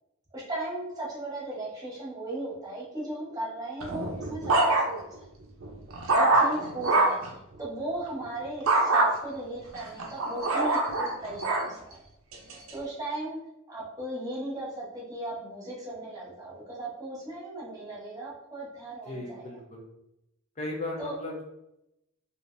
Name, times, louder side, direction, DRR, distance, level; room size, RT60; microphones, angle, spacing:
voice 1, 0.3-5.3 6.1-7.2 7.6-12.0 12.7-13.4 13.7-19.5 21.0-21.1, right 1 dB, 20° right, -6 dB, 1.0 m, -37 dB
sound 1, 3.8-5.2 5.6-7.3 8.7-9.1 9.7-11.7 12.3-12.7, right 2 dB, 85° right, 0.6 m, -24 dB
voice 2, 19.1-19.8 20.6-21.4, left 2 dB, 35° left, -1 dB, 0.5 m, -36 dB
3.3 x 2.6 x 2.5 m, 0.85 s
head